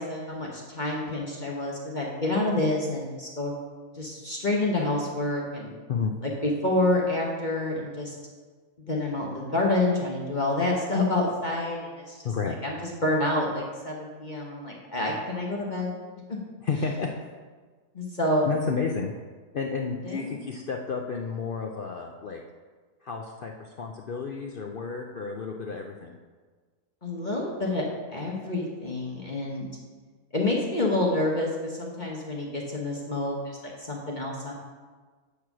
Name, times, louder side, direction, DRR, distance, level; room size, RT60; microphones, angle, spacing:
voice 1, 0.0-3.5 3.9-5.7 6.2-8.1 8.8-15.9 17.9-18.6 20.0-20.3 27.0-27.8 28.1-29.7 30.3-34.5, left 2 dB, 35° left, -2 dB, 1.1 m, -28 dB
voice 2, 12.2-12.6 16.6-17.1 18.5-19.1 19.5-22.4 23.0-26.1, left 5 dB, 70° left, 1 dB, 0.5 m, -31 dB
8.4 x 4.7 x 5.9 m, 1.4 s
omnidirectional pair, 1.6 m